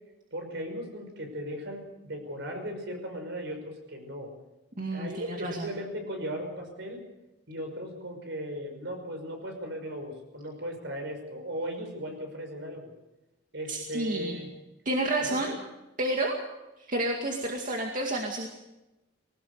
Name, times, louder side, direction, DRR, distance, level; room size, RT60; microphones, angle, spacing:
voice 1, 0.3-4.3 4.9-7.0 7.5-12.9 13.5-14.5 15.2-15.5, equal, 65° right, 4 dB, 5.8 m, -37 dB
voice 2, 4.8-5.7 13.7-14.4 14.9-15.6 16.0-16.4 16.8-18.5, right 1 dB, 45° right, 0 dB, 2.2 m, -30 dB
20.5 x 18.5 x 6.8 m, 0.98 s
head